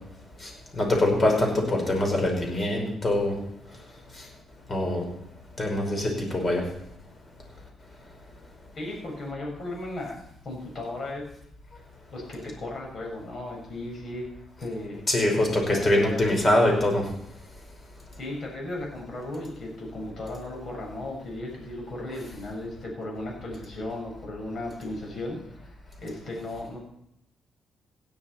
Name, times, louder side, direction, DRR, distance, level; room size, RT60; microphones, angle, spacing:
voice 1, 0.4-3.3 4.2-4.3 4.7-5.0 5.6-6.6 15.1-17.1, left 1 dB, 35° left, 1 dB, 5.0 m, -24 dB
voice 2, 8.7-11.3 12.1-14.3 14.6-15.0 15.7-16.2 18.2-25.7 26.0-26.8, left 2 dB, 50° left, 0 dB, 5.5 m, -36 dB
16.5 x 10.0 x 4.4 m, 0.80 s
cardioid pair, 90°, 0 cm